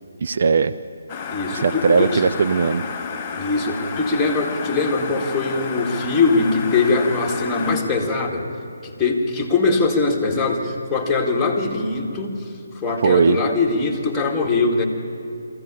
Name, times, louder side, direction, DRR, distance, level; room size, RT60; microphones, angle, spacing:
voice 1, 0.2-0.7 1.5-2.8 13.0-13.4, right 5 dB, 50° right, 10 dB, 0.6 m, -18 dB
sound 1, 1.1-7.8, left 5 dB, 25° left, 2.2 m, -31 dB
voice 2, 1.3-2.2 3.3-8.5 8.8-14.8, left 3 dB, 10° left, 0 dB, 2.4 m, -22 dB
22.0 x 15.5 x 8.6 m, 2.6 s
figure-of-eight pair, 145°, 0 cm